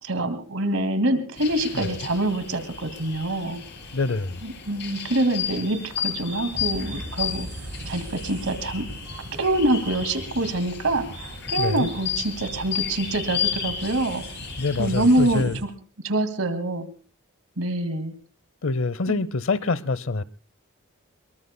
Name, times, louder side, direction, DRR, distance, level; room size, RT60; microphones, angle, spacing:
voice 1, 0.0-3.6 4.7-7.5 7.9-8.8 9.4-14.2 14.8-15.5 16.0-16.9 17.6-18.1 19.1-19.2, right 1 dB, 75° right, 2.2 m, -25 dB
sound 1, 1.4-15.4, left 8 dB, 50° left, 3.8 m, -33 dB
voice 2, 3.9-4.4 11.6-11.9 14.6-15.6 18.6-20.2, left 3 dB, 65° left, 0.7 m, -25 dB
sound 2, 6.5-15.6, right 1 dB, 55° right, 2.5 m, -40 dB
25.0 x 22.0 x 2.2 m
head